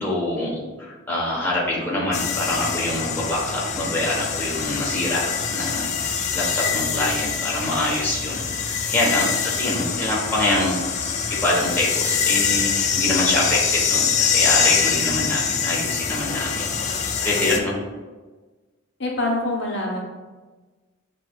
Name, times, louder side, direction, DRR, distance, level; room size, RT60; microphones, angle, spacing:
voice 1, 0.0-10.8 11.3-17.8, left 1 dB, 10° left, -6 dB, 1.0 m, -25 dB
sound 1, 2.1-17.6, left 6 dB, 35° left, 0.4 m, -24 dB
voice 2, 19.0-20.0, left 1 dB, 60° left, -2 dB, 0.8 m, -25 dB
7.2 x 3.0 x 2.3 m, 1.3 s
head